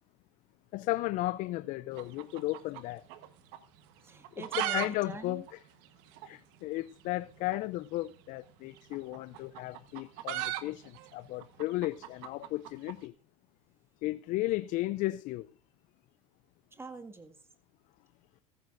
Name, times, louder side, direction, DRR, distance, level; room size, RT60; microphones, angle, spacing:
voice 1, 0.7-3.0 4.6-5.4 6.3-10.8 11.1-13.1 14.0-15.4, left 18 dB, 50° left, 0.5 m, -34 dB
sound 1, 1.9-3.3 3.5-3.6 4.1-4.9 5.1-5.2 5.5-5.6 6.2-6.3 7.4-7.6 8.8-13.0, right 12 dB, 65° right, 1.3 m, -36 dB
voice 2, 4.0-5.5 16.7-17.4, right 3 dB, 15° right, 1.9 m, -45 dB
15.5 x 14.5 x 2.6 m
hypercardioid pair, 95°, 17 cm